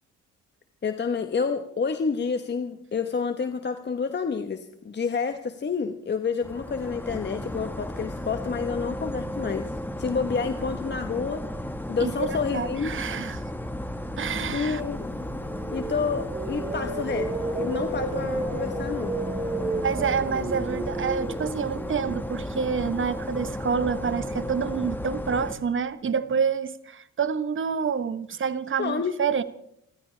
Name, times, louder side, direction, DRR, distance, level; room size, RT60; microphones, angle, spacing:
voice 1, 0.8-9.7 10.0-11.4 11.9-12.9 14.5-15.1 15.7-19.1 28.8-29.1, left 5 dB, 35° left, 7 dB, 1.1 m, -29 dB
sound 1, 6.4-25.5, left 1 dB, 5° left, 1.6 m, -34 dB
voice 2, 12.0-13.4 14.2-14.8 19.8-29.4, right 6 dB, 40° right, 13 dB, 1.1 m, -28 dB
sound 2, 14.5-24.7, right 2 dB, 20° right, 4.1 m, -33 dB
28.5 x 14.5 x 3.3 m, 0.71 s
cardioid pair, 90°, 30 cm